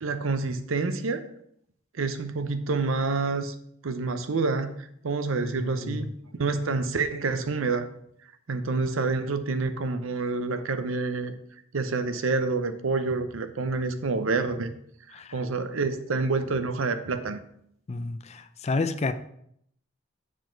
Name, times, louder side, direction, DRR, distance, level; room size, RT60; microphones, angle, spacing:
voice 1, 0.0-1.3 1.9-3.5 3.8-6.1 6.4-7.9 8.5-11.3 11.7-14.7 15.3-17.4, right 3 dB, 80° right, 0.7 m, -28 dB
voice 2, 5.6-6.1 15.1-15.4 17.9-19.1, left 3 dB, 35° left, 0.4 m, -30 dB
8.0 x 4.9 x 4.5 m
head